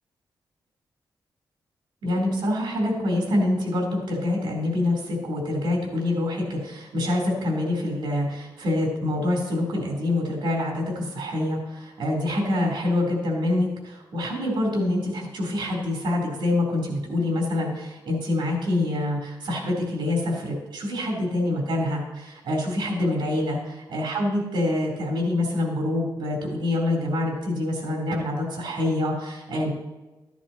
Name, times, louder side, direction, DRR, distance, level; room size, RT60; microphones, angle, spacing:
voice 1, 2.0-29.7, left 1 dB, 85° right, -1 dB, 3.9 m, -26 dB
14.5 x 10.0 x 3.0 m, 1.1 s
wide cardioid pair, 150°, 8 cm